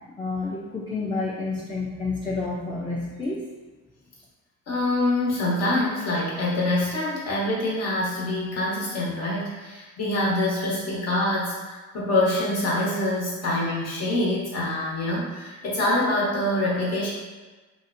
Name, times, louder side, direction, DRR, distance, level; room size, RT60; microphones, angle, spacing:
voice 1, 0.2-3.4, left 3 dB, 15° left, -5 dB, 0.4 m, -29 dB
voice 2, 4.7-17.1, left 1 dB, 55° left, -6 dB, 1.0 m, -25 dB
2.7 x 2.1 x 2.5 m, 1.3 s
cardioid pair, 90°, 30 cm